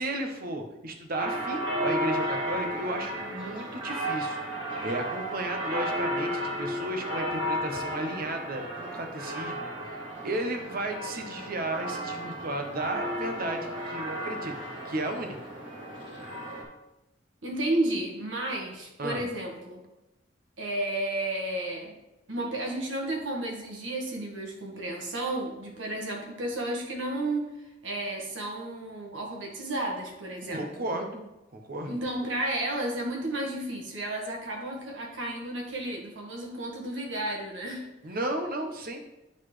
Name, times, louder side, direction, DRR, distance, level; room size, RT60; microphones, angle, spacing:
voice 1, 0.0-4.4 4.8-14.5 14.8-15.4 19.0-19.3 30.4-31.2 31.5-31.9 38.0-39.0, right 1 dB, 50° right, 4 dB, 0.9 m, -34 dB
sound 1, 1.2-16.6, equal, 25° right, 2.0 m, -33 dB
voice 2, 17.4-19.8 20.6-21.9 22.3-27.5 27.8-30.7 31.9-37.9, right 1 dB, 80° right, 0 dB, 1.6 m, -32 dB
9.5 x 4.1 x 3.2 m, 0.96 s
head